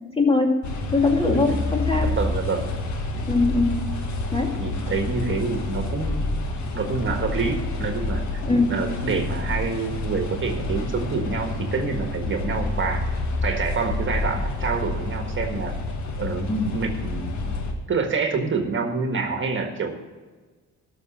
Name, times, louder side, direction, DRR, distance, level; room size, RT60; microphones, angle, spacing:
voice 1, 0.2-0.6 0.9-2.1 3.2-3.8 4.3-4.6 8.4-8.7 16.5-16.7, left 3 dB, 20° left, 2 dB, 2.2 m, -21 dB
sound 1, 0.6-17.7, left 2 dB, 65° left, 1.7 m, -28 dB
voice 2, 1.3-1.6 2.0-2.7 4.6-6.4 6.7-8.4 8.7-13.0 13.4-15.8 16.2-17.5 17.9-20.0, right 4 dB, 40° right, 4 dB, 1.6 m, -27 dB
12.5 x 6.4 x 7.2 m, 1.4 s
cardioid pair, 90°, 30 cm